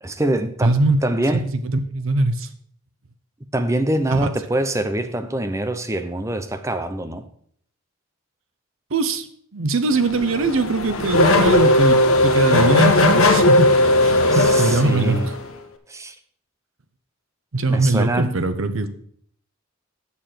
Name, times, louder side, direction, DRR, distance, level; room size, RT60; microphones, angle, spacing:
voice 1, 0.0-1.4 3.5-7.3 14.3-15.3 15.9-16.1 17.7-18.4, right 1 dB, 15° right, 8 dB, 0.6 m, -24 dB
voice 2, 0.6-1.0 1.5-2.5 4.1-4.3 8.9-9.3 9.5-15.4 17.5-18.9, right 2 dB, 70° right, 10 dB, 0.8 m, -21 dB
Race car auto racing / Accelerating revving vroom, 9.9-15.5, left 1 dB, 75° left, 1.1 m, -17 dB
7.1 x 6.8 x 5.8 m, 0.63 s
head